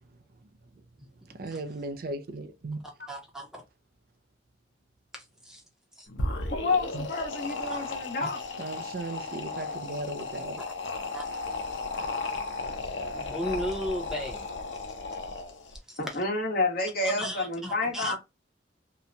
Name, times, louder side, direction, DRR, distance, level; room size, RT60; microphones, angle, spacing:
voice 1, 1.2-2.8 6.9-7.1 8.6-10.6, right 2 dB, 55° right, 0.4 m, -36 dB
voice 2, 3.1-3.6 5.1-5.6 6.0-6.1 7.7-7.9 11.1-11.2 13.1-14.5 15.7-16.2 17.0-18.1, equal, 5° right, 0.8 m, -36 dB
sound 1, 6.1-15.8, left 3 dB, 85° left, 0.6 m, -35 dB
voice 3, 6.5-8.4 16.0-18.1, left 2 dB, 55° left, 1.1 m, -29 dB
2.9 x 2.2 x 2.5 m
head